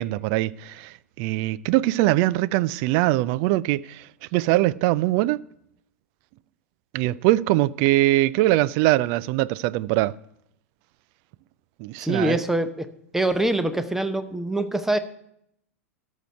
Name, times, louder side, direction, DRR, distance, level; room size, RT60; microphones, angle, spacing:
voice 1, 0.0-4.0 4.3-5.4 6.9-10.1 11.8-12.4, right 17 dB, 40° right, 0.3 m, -22 dB
voice 2, 12.0-12.9 13.1-15.0, right 1 dB, 5° right, 0.7 m, -24 dB
13.0 x 6.5 x 5.6 m
figure-of-eight pair, 95°, 8 cm